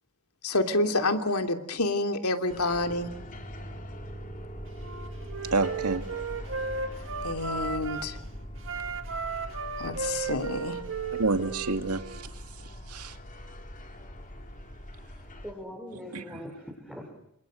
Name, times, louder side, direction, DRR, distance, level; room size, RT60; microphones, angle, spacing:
voice 1, 0.4-3.1 7.2-8.2 9.8-10.8, left 2 dB, 75° left, 6 dB, 2.9 m, -28 dB
sound 1, 2.5-15.5, equal, 40° left, 3.6 m, -42 dB
Wind instrument woodwind instrument, 4.8-8.1 8.6-12.3, right 5 dB, 60° right, 2.0 m, -35 dB
voice 2, 5.5-6.1 11.2-13.2 16.1-16.4, right 3 dB, 85° right, 8 dB, 2.3 m, -29 dB
voice 3, 15.0-17.1, equal, 5° right, -1 dB, 5.5 m, -42 dB
29.0 x 27.0 x 6.4 m, 0.78 s
head